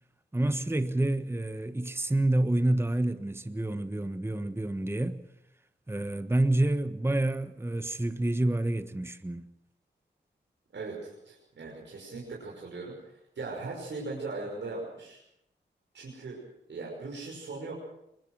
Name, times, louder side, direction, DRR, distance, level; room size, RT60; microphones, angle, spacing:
voice 1, 0.3-5.2 5.9-9.5, right 1 dB, 15° right, 1.2 m, -28 dB
voice 2, 10.7-15.2 15.9-16.4 16.7-17.7, right 3 dB, 75° right, 5.9 m, -39 dB
23.5 x 20.0 x 6.3 m
cardioid pair, 60°, 19 cm